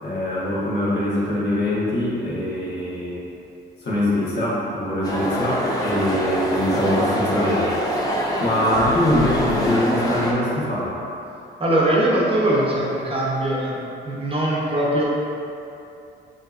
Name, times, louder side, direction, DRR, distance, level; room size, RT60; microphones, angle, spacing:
voice 1, 0.0-3.2 3.8-11.0, left 1 dB, 60° left, -7 dB, 1.3 m, -23 dB
sound 1, 5.0-10.3, equal, 20° left, 0.7 m, -24 dB
voice 2, 11.6-13.8 14.1-15.0, right 1 dB, 30° right, -5 dB, 0.8 m, -21 dB
5.3 x 2.9 x 2.6 m, 2.7 s
cardioid pair, 90°, 20 cm